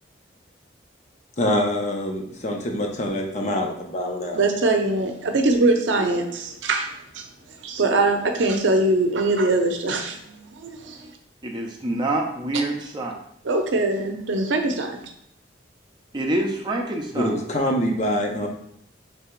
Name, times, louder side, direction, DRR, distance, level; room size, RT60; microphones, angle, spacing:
voice 1, 1.4-4.4 17.1-18.5, left 1 dB, 40° left, 1 dB, 0.6 m, -25 dB
voice 2, 4.3-6.9 7.1-7.2 7.6-11.1 13.4-15.0, right 2 dB, 80° right, 5 dB, 0.6 m, -22 dB
voice 3, 11.4-13.1 16.1-17.3, right 1 dB, 25° right, 0 dB, 0.6 m, -26 dB
3.4 x 2.9 x 4.4 m, 0.73 s
head